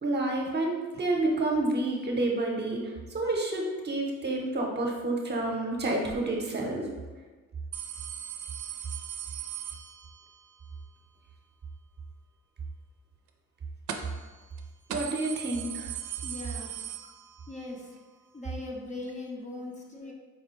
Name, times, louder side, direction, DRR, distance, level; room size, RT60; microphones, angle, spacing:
voice 1, 0.0-2.8 3.1-6.9 14.9-15.9 20.0-20.1, right 2 dB, 35° right, 0 dB, 0.9 m, -29 dB
sound 1, 7.7-10.4 13.9-14.3 14.6-14.7 14.9-17.6 18.0-18.1 19.1-19.2, right 9 dB, 70° right, 0.5 m, -39 dB
voice 2, 16.2-16.7 17.5-17.9 18.3-20.1, left 2 dB, 25° left, -1 dB, 0.7 m, -39 dB
4.9 x 2.2 x 4.3 m, 1.3 s
cardioid pair, 90°, 30 cm